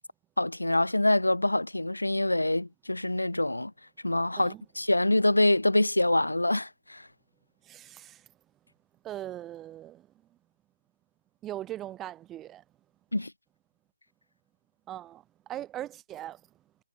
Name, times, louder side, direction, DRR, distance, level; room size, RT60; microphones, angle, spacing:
voice 1, 0.4-3.7 4.0-7.1 13.1-13.3, left 1 dB, 85° left, 2.0 m, -25 dB
voice 2, 7.6-8.3 9.0-10.1 11.4-12.6 14.9-16.4, right 12 dB, 15° right, 2.0 m, -40 dB
figure-of-eight pair, 145°, 0 cm